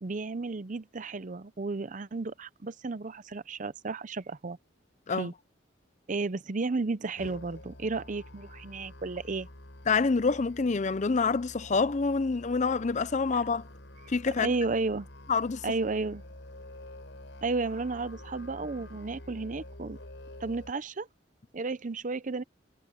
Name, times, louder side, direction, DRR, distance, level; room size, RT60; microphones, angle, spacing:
voice 1, 0.0-4.6 5.1-5.3 6.1-9.5 13.3-13.4 14.4-15.1 15.6-16.2 17.4-20.0 20.4-21.1 21.5-22.4, right 3 dB, 40° right, 0.6 m, -33 dB
Musical instrument, 7.2-20.7, left 1 dB, 70° left, 5.3 m, -48 dB
voice 2, 9.9-13.6 14.1-14.5 15.3-15.6, left 4 dB, 40° left, 0.5 m, -27 dB
head